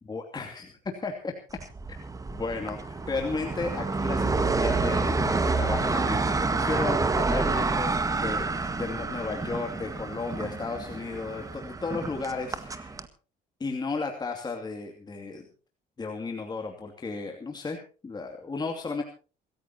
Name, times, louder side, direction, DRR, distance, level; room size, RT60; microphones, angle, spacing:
voice 1, 0.0-0.7 1.0-1.3 1.9-2.0 2.3-12.9 13.6-15.5 16.0-19.0, left 4 dB, 25° left, 2 dB, 2.6 m, -34 dB
sound 1, 1.6-13.1, right 3 dB, 20° right, 1.7 m, -28 dB
sound 2, 3.1-11.6, left 7 dB, 75° left, 5.8 m, -52 dB
27.5 x 14.0 x 2.9 m, 0.36 s
cardioid pair, 110°, 17 cm